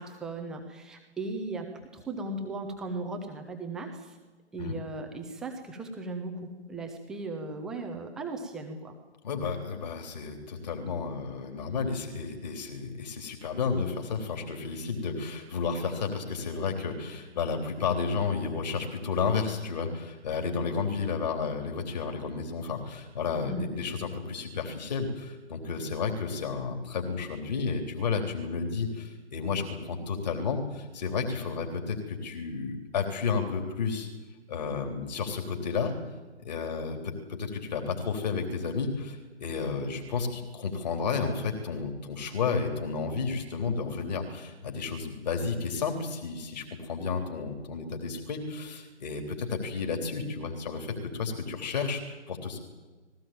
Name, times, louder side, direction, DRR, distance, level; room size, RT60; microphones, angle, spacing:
voice 1, 0.0-4.2 4.5-8.9 23.5-23.7, right 2 dB, ahead, 3 dB, 0.7 m, -37 dB
voice 2, 9.2-34.1 34.5-36.0 36.4-52.6, left 5 dB, 35° left, 4 dB, 3.6 m, -32 dB
20.5 x 17.5 x 9.0 m, 1.3 s
figure-of-eight pair, 140°, 35 cm